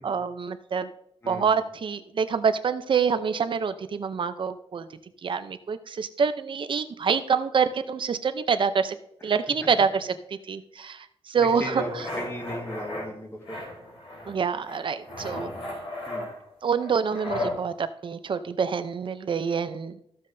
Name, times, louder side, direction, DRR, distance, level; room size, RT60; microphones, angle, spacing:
voice 1, 0.0-0.9 1.3-4.9 5.2-9.0 9.2-10.1 10.5-11.8 14.3-15.5 16.6-20.0, right 6 dB, 50° right, 10 dB, 0.6 m, -26 dB
voice 2, 1.2-1.6 11.4-13.6 16.1-16.3, left 1 dB, 20° left, 1 dB, 1.7 m, -36 dB
sound 1, 11.7-13.1 13.4-14.4 14.6-17.6, left 1 dB, 60° left, 3.8 m, -35 dB
14.0 x 7.5 x 2.7 m, 0.74 s
wide cardioid pair, 155°, 11 cm